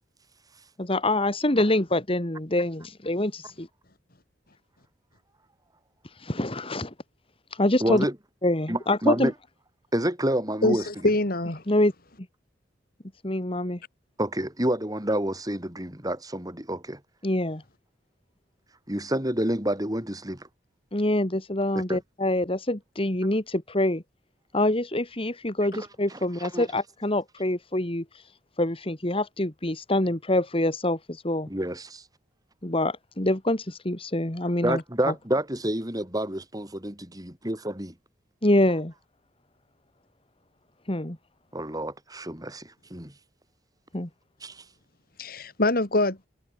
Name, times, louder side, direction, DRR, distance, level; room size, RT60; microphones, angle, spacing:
voice 1, 0.8-3.7 6.0-6.9 7.5-8.1 8.4-9.3 11.7-11.9 13.2-13.8 17.2-17.6 20.9-24.0 24.5-28.3 28.6-31.5 32.6-35.1 38.4-38.9 40.9-41.2 43.9-44.1, left 1 dB, 30° left, 2.2 m, -25 dB
voice 2, 7.8-8.1 8.7-9.3 9.9-10.8 14.2-17.0 18.9-20.5 21.9-22.0 25.7-25.9 26.5-26.7 31.5-32.0 34.6-37.9 41.5-43.1 44.4-44.6, right 1 dB, 20° right, 5.4 m, -28 dB
voice 3, 10.6-11.6 45.2-46.2, left 2 dB, 50° left, 2.6 m, -24 dB
head